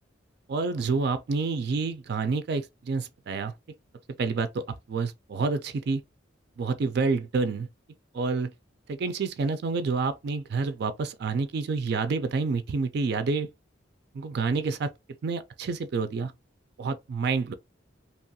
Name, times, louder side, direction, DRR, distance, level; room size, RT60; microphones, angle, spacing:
voice 1, 0.5-3.5 4.2-6.0 6.6-7.7 8.1-8.5 8.9-13.5 14.1-14.9 15.2-16.3 16.8-17.5, right 4 dB, 60° right, 0.4 m, -28 dB
2.8 x 2.3 x 2.7 m
head